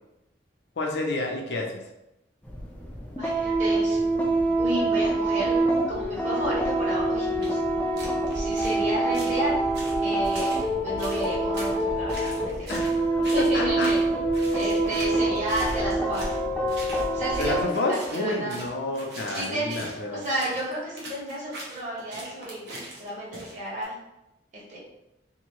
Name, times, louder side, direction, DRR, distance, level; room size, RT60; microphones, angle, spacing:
voice 1, 0.8-1.8 12.7-13.0 13.5-13.9 17.4-20.2, left 2 dB, 70° left, 0 dB, 0.5 m, -29 dB
sound 1, 2.4-17.6, right 2 dB, 10° left, 0.3 m, -25 dB
voice 2, 3.2-4.0 4.6-7.6 8.0-9.6 10.0-12.7 13.3-14.0 14.5-16.4 17.1-18.6 19.3-19.8 20.1-24.0 24.5-24.8, right 1 dB, 40° right, -7 dB, 1.2 m, -32 dB
sound 2, 7.4-7.5 8.0-8.8 9.1-9.4 9.7-10.6 11.0-11.7 12.1-13.0 13.2-13.5 13.8-14.1 14.3-16.4 16.7-23.9, right 2 dB, 70° right, 0.8 m, -41 dB
2.8 x 2.6 x 3.0 m, 0.92 s
head